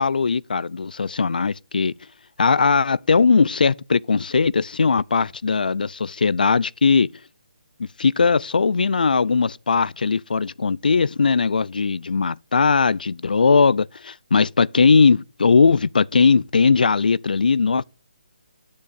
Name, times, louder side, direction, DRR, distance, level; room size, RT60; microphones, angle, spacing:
voice 1, 0.0-1.9 2.4-7.1 7.8-17.8, left 4 dB, 80° left, 0.4 m, -19 dB
11.0 x 6.7 x 5.3 m
hypercardioid pair, 175°, 5 cm